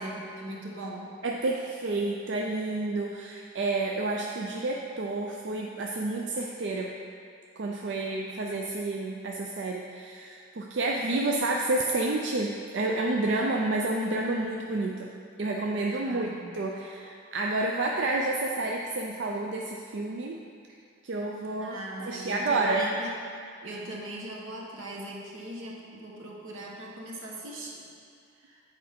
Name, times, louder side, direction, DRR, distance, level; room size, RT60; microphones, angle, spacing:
voice 1, 0.0-1.1 16.0-16.6 21.6-23.1 23.6-27.9 28.4-28.6, right 1 dB, 85° right, -2 dB, 1.2 m, -40 dB
voice 2, 1.2-7.0 7.6-15.1 15.4-20.4 21.0-22.9 23.7-23.8, right 2 dB, 60° right, 0 dB, 0.4 m, -30 dB
7.8 x 4.6 x 5.1 m, 2.3 s
head